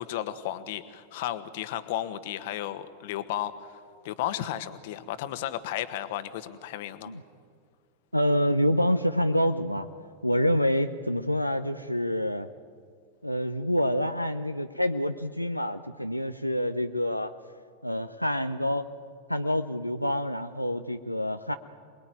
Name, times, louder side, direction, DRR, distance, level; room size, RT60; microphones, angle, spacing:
voice 1, 0.0-3.8 4.0-7.1, left 12 dB, 50° left, 12 dB, 1.5 m, -34 dB
voice 2, 8.1-9.9 10.2-12.5 13.2-17.3 17.8-18.9 19.3-21.5, equal, 90° left, 8 dB, 0.8 m, -27 dB
27.0 x 20.5 x 9.4 m, 2.2 s
figure-of-eight pair, 90°, 0 cm